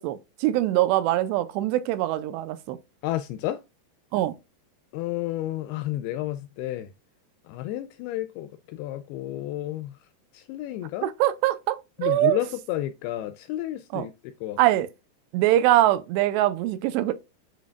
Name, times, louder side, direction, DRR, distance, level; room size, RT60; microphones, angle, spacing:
voice 1, 0.0-2.8 4.1-4.3 11.0-12.4 13.9-14.1 14.6-14.9 15.3-17.1, right 14 dB, 90° right, 2.8 m, -23 dB
voice 2, 3.0-3.6 4.9-6.9 7.5-10.0 10.3-11.1 12.0-14.6, left 14 dB, 85° left, 2.3 m, -31 dB
10.5 x 4.2 x 2.3 m
omnidirectional pair, 4.9 m